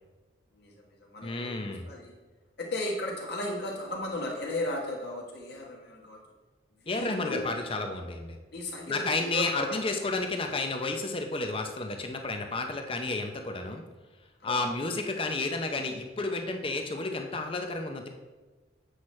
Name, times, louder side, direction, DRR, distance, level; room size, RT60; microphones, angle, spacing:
voice 1, 0.5-2.1 2.6-6.2 6.8-7.5 8.5-9.8 14.4-14.6, left 1 dB, 60° left, -1 dB, 1.4 m, -35 dB
voice 2, 1.2-1.9 6.9-8.4 8.9-13.8 14.4-18.1, left 3 dB, 30° left, 4 dB, 0.7 m, -31 dB
8.0 x 5.9 x 3.2 m, 1.2 s
head